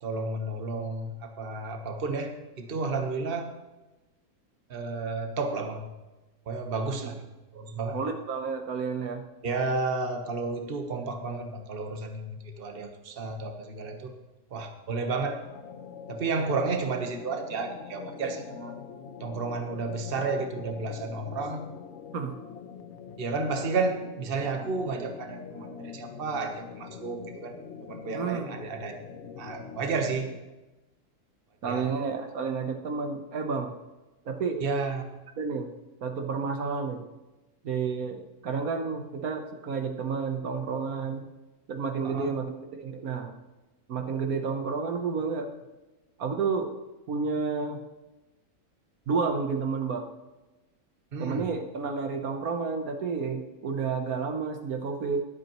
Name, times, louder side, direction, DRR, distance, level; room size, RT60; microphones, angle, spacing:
voice 1, 0.0-3.5 4.7-5.9 6.5-7.3 7.5-8.0 9.4-14.1 14.5-15.4 16.1-18.8 19.2-21.7 23.2-27.5 27.8-28.9 29.4-30.3 31.6-31.9 34.6-35.0 42.0-42.4 51.1-51.5, right 3 dB, 40° right, 5 dB, 1.3 m, -32 dB
voice 2, 7.9-9.2 22.1-22.3 28.1-28.5 31.6-33.7 34.2-34.6 35.4-35.7 36.0-37.0 37.6-41.3 41.7-43.3 43.9-45.5 46.2-46.7 47.1-47.8 49.1-50.1 51.2-55.3, right 5 dB, 70° right, 5 dB, 1.4 m, -30 dB
sound 1, 15.4-30.5, left 7 dB, 55° left, 1.0 m, -44 dB
21.5 x 8.1 x 3.1 m, 1.1 s
omnidirectional pair, 1.6 m